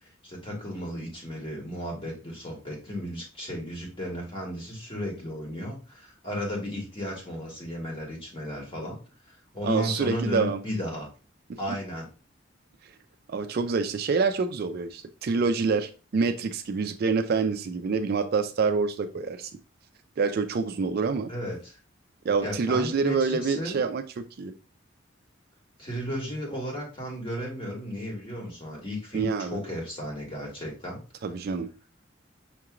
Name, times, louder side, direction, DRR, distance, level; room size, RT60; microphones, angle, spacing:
voice 1, 0.0-9.0 9.3-11.1 11.6-12.1 21.3-21.8 22.4-23.8 25.8-31.0, equal, 30° left, 1.5 m, -34 dB
voice 2, 9.6-10.6 11.5-11.6 13.3-19.5 20.2-21.3 22.2-24.5 29.1-29.6 31.2-31.7, right 4 dB, 55° right, 0.4 m, -27 dB
5.8 x 3.0 x 2.4 m
head